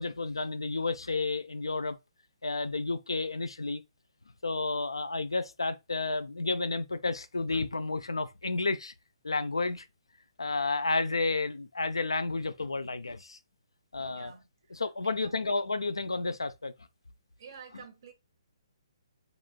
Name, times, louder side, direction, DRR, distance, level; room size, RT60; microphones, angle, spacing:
voice 1, 0.0-2.0 2.4-3.8 4.4-8.9 9.2-9.9 10.4-13.4 13.9-14.3 14.7-16.7, left 3 dB, 75° left, 0.4 m, -31 dB
voice 2, 14.1-14.4 15.2-15.5 17.4-18.1, right 6 dB, 45° right, 0.8 m, -49 dB
3.9 x 3.0 x 2.2 m
figure-of-eight pair, 130°, 3 cm